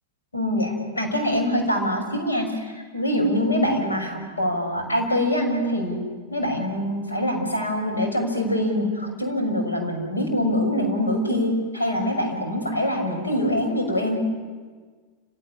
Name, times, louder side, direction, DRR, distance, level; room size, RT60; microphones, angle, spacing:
voice 1, 0.3-14.2, left 1 dB, 75° left, 2 dB, 6.3 m, -24 dB
29.0 x 18.0 x 9.9 m, 1.5 s
figure-of-eight pair, 90°, 0 cm